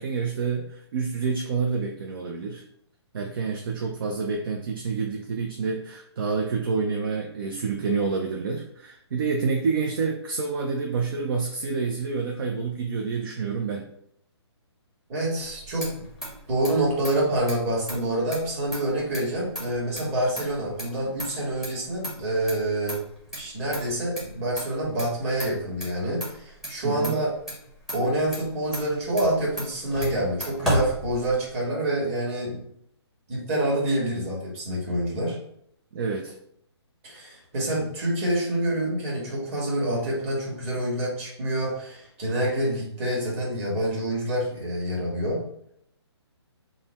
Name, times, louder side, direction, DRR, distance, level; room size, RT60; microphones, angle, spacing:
voice 1, 0.0-2.6 3.1-13.8 26.8-27.2 35.9-36.4, right 5 dB, 50° right, 2 dB, 0.5 m, -28 dB
voice 2, 15.1-16.0 16.5-23.0 23.3-27.3 27.9-32.6 33.3-35.4 37.0-45.4, right 1 dB, 30° right, -4 dB, 1.5 m, -27 dB
Motor vehicle (road), 15.4-31.6, equal, 5° right, 0.8 m, -35 dB
3.8 x 2.1 x 4.1 m, 0.72 s
hypercardioid pair, 150°, 15 cm